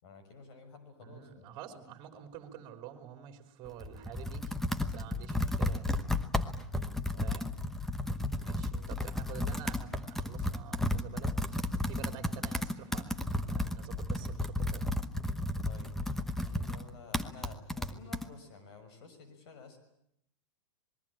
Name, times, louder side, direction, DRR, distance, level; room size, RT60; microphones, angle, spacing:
voice 1, 0.0-1.6 5.4-5.5 6.6-7.3 8.5-8.9 15.6-19.8, left 4 dB, 55° left, 9 dB, 6.5 m, -53 dB
voice 2, 1.0-4.6 4.8-5.9 7.2-7.5 8.3-11.3 11.9-15.0, right 10 dB, 30° right, 6 dB, 3.3 m, -48 dB
Computer keyboard, 3.7-18.3, left 1 dB, ahead, 1.0 m, -33 dB
26.0 x 21.0 x 8.8 m, 0.77 s
supercardioid pair, 155°, 16 cm